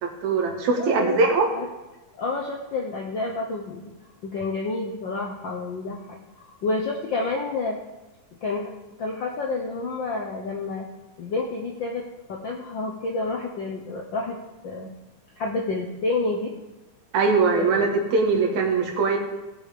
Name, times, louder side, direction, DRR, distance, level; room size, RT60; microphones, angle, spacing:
voice 1, 0.0-1.5 17.1-19.2, right 4 dB, 65° right, 1 dB, 3.1 m, -21 dB
voice 2, 0.7-1.2 1.5-1.7 2.2-3.9 4.2-7.8 8.4-8.7 9.0-10.9 11.2-12.0 12.3-14.4 14.6-14.9 15.4-16.5 17.6-17.7, left 3 dB, 80° left, 1 dB, 1.0 m, -29 dB
18.0 x 6.8 x 5.1 m, 1.1 s
omnidirectional pair, 3.5 m